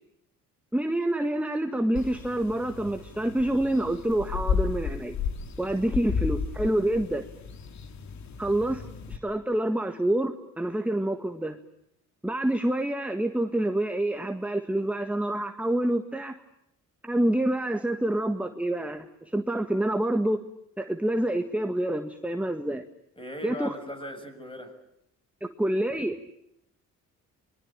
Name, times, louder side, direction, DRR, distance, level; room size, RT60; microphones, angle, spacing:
voice 1, 0.7-5.2 5.6-7.2 8.4-8.8 9.1-11.6 12.2-16.3 17.0-20.4 20.8-22.8 23.4-23.7 25.4-26.2, right 1 dB, 5° right, 6 dB, 1.7 m, -27 dB
sound 1, 2.0-9.2, left 6 dB, 65° left, 2.5 m, -33 dB
voice 2, 23.2-24.8, left 1 dB, 15° left, 7 dB, 6.8 m, -38 dB
26.0 x 23.0 x 8.8 m, 0.78 s
cardioid pair, 90°, 30 cm